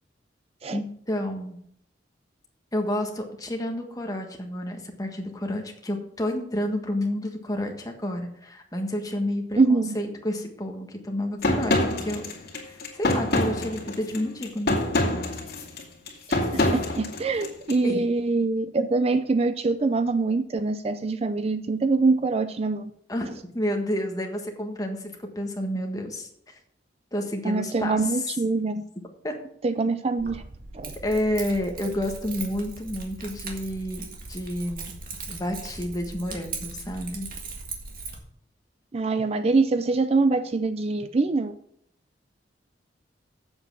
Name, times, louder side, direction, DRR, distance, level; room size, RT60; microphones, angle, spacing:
voice 1, 0.7-1.6 2.7-12.3 12.6-14.8 17.8-18.0 23.1-26.3 27.1-28.3 29.2-29.3 31.0-34.9 35.3-37.3, left 1 dB, 20° left, 3 dB, 1.5 m, -30 dB
voice 2, 9.6-10.0 16.3-22.9 27.4-28.8 29.6-30.4 30.7-31.0 38.9-41.5, right 3 dB, 35° right, 11 dB, 0.4 m, -24 dB
sound 1, 11.4-17.8, left 1 dB, 55° left, 2.5 m, -26 dB
Keys jangling, 30.2-38.2, right 4 dB, 50° right, 1.8 m, -39 dB
7.9 x 7.8 x 6.1 m, 0.69 s
head